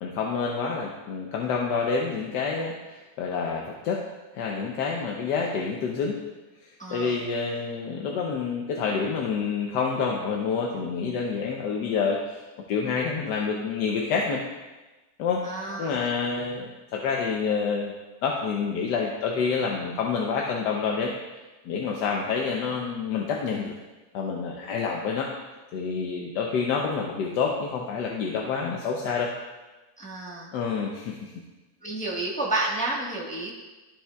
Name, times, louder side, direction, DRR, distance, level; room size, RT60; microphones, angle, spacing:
voice 1, 0.0-4.0 4.3-6.2 6.9-12.4 12.7-14.4 15.2-15.4 15.8-17.9 18.2-21.1 21.6-23.7 24.1-25.3 25.7-29.3 30.5-31.3, left 5 dB, 70° left, 0 dB, 1.3 m, -28 dB
voice 2, 6.8-7.2 15.4-16.0 30.0-30.5 31.8-33.5, right 2 dB, 5° left, -4 dB, 0.8 m, -30 dB
14.0 x 5.5 x 2.3 m, 1.2 s
omnidirectional pair, 2.0 m